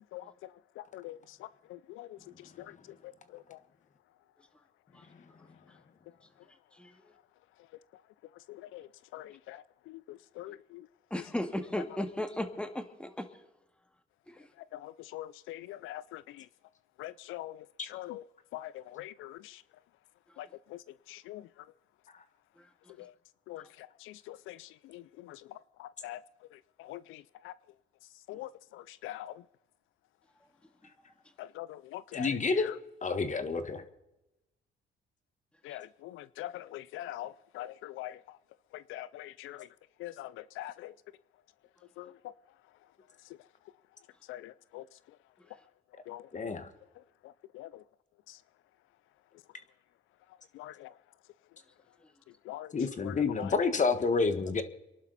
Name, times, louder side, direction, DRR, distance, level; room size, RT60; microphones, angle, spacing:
voice 1, 1.7-2.2 2.6-2.7 3.3-3.6 8.5-10.9 14.7-16.4 17.0-18.2 18.5-19.6 20.4-20.8 21.1-21.4 23.0-23.1 23.5-25.4 25.8-26.2 26.8-27.5 28.3-29.4 31.4-32.7 35.6-38.2 38.7-39.7 40.0-40.9 42.0-42.1 44.3-44.8 46.1-46.2 47.5-47.7 50.5-50.9 52.5-52.7 53.0-53.5, left 15 dB, 90° left, 0.4 m, -43 dB
voice 2, 11.1-13.3 14.3-14.4 35.7-35.8, left 1 dB, 5° left, 2.1 m, -35 dB
voice 3, 32.1-32.7 33.0-33.8 46.3-46.7 52.7-54.6, left 4 dB, 40° left, 1.6 m, -29 dB
26.5 x 11.5 x 4.1 m
cardioid pair, 90°, 20 cm